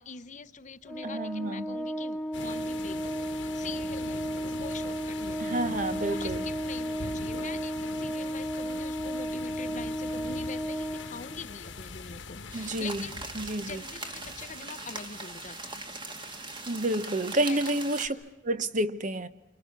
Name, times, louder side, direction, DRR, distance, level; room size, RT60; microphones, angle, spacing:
voice 1, 0.0-5.7 6.1-13.2 13.6-15.8 17.3-17.7, left 4 dB, 35° left, 0.7 m, -44 dB
Organ, 0.9-11.6, equal, 5° left, 0.9 m, -34 dB
voice 2, 1.0-1.8 5.4-6.4 12.5-13.0 13.4-13.8 16.7-18.2 18.4-19.3, right 1 dB, 40° right, 0.8 m, -29 dB
sound 1, 2.3-16.9, left 3 dB, 65° left, 1.3 m, -43 dB
sound 2, 12.5-18.1, right 2 dB, 25° right, 1.5 m, -40 dB
28.0 x 25.0 x 5.9 m
head